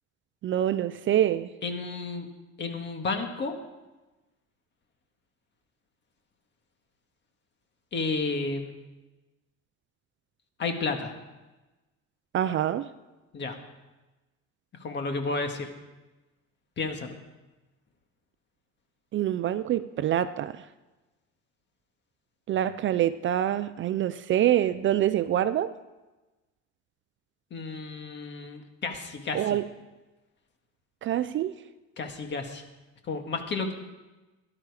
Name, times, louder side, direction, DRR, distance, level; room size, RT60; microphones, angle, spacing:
voice 1, 0.4-1.5 12.3-12.9 19.1-20.6 22.5-25.7 29.3-29.6 31.0-31.5, right 11 dB, 40° right, 13 dB, 0.4 m, -25 dB
voice 2, 1.6-2.3 2.6-3.5 7.9-8.7 10.6-11.1 13.3-13.6 14.8-15.7 16.8-17.2 27.5-29.6 32.0-32.6 33.0-33.7, left 3 dB, 35° left, 5 dB, 1.8 m, -32 dB
16.5 x 12.0 x 4.9 m, 1.1 s
cardioid pair, 150°, 30 cm